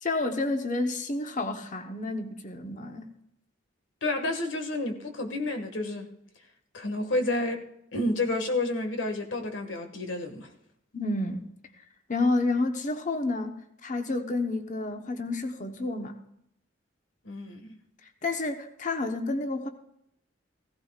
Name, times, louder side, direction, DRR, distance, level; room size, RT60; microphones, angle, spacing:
voice 1, 0.0-3.1 10.9-11.5 12.1-16.1 18.2-19.7, left 2 dB, 40° left, 6 dB, 1.0 m, -30 dB
voice 2, 4.0-6.1 6.7-7.6 7.9-10.5 17.2-17.8, left 2 dB, 85° left, 4 dB, 1.7 m, -30 dB
16.0 x 15.5 x 2.4 m, 0.75 s
head